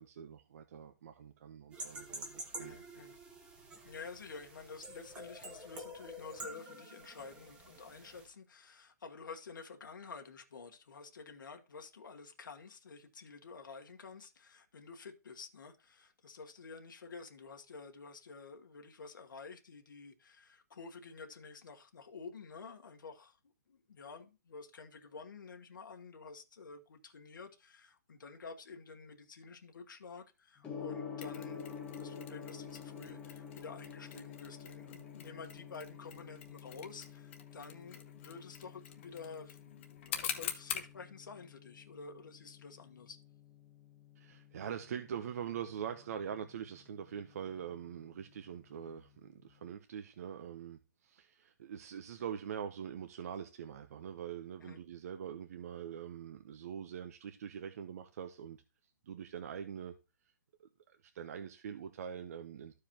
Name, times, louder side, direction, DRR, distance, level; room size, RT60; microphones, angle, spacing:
voice 1, 0.0-2.8 44.2-58.6 59.1-59.9 60.6-62.7, right 8 dB, 50° right, 0.7 m, -44 dB
sound 1, 1.7-8.3, right 1 dB, 10° right, 1.0 m, -48 dB
voice 2, 2.6-3.2 3.8-23.4 23.7-43.2 54.6-54.8, left 4 dB, 85° left, 1.3 m, -50 dB
Gong, 30.6-49.7, left 7 dB, 10° left, 1.5 m, -50 dB
Mechanisms, 31.2-40.9, left 9 dB, 35° left, 1.0 m, -46 dB
13.5 x 4.9 x 2.9 m
hypercardioid pair, 160°, 11 cm